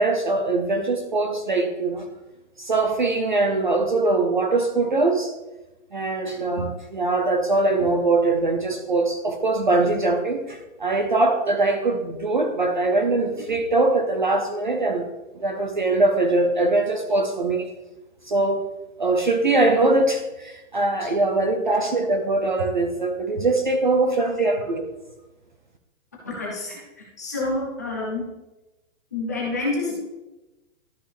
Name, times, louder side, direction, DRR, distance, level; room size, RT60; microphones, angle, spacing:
voice 1, 0.0-2.1 2.6-5.3 5.9-15.1 15.3-17.7 18.3-18.6 19.0-24.8, right 2 dB, 35° right, 6 dB, 0.5 m, -22 dB
voice 2, 26.2-26.8 27.2-28.3 29.1-30.0, left 2 dB, 15° left, -4 dB, 0.6 m, -28 dB
12.0 x 5.0 x 3.3 m, 1.0 s
hypercardioid pair, 180°, 41 cm